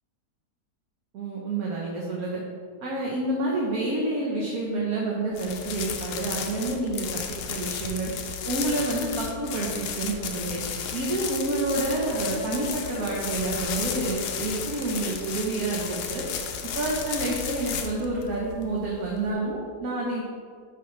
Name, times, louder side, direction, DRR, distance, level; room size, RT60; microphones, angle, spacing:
voice 1, 1.1-2.4 2.8-7.2 7.5-8.1 8.5-10.6 10.9-16.2 16.7-20.3, right 2 dB, 65° right, -4 dB, 1.3 m, -28 dB
sound 1, 5.3-19.3, left 7 dB, 85° left, 1.2 m, -34 dB
9.5 x 4.3 x 3.2 m, 2.1 s
omnidirectional pair, 1.7 m